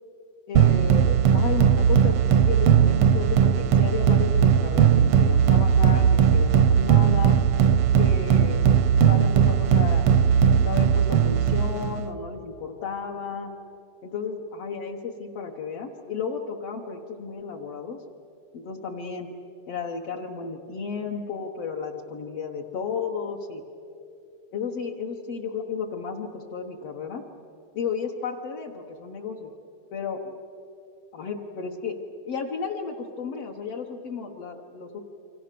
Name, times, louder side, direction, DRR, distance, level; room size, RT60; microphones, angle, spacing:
voice 1, 0.5-7.4 8.0-8.7 9.0-10.1 10.6-13.5 14.0-18.0 18.5-19.3 19.7-23.6 24.5-27.2 27.7-29.5 29.9-30.2 31.1-32.0 32.2-35.0, left 5 dB, 60° left, 0 dB, 2.1 m, -33 dB
sound 1, 0.6-12.1, right 8 dB, 70° right, 1.4 m, -19 dB
29.0 x 25.0 x 6.8 m, 2.6 s
omnidirectional pair, 3.4 m